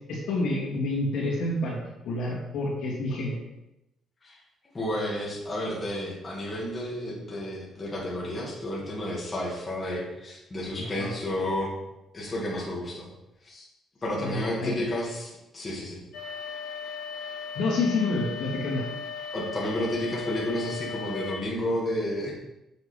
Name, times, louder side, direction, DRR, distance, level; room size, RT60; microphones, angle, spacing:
voice 1, 0.1-1.8 2.0-3.4 10.8-11.1 14.2-14.7 17.5-18.9, left 2 dB, 70° left, -4 dB, 2.7 m, -28 dB
voice 2, 4.7-11.7 12.1-13.1 13.4-13.7 14.0-16.0 19.3-22.3, left 1 dB, 20° left, -5 dB, 2.2 m, -31 dB
sound 1, 16.1-21.3, left 6 dB, 90° left, 2.3 m, -37 dB
7.4 x 6.9 x 3.5 m, 0.91 s
cardioid pair, 135°, 0 cm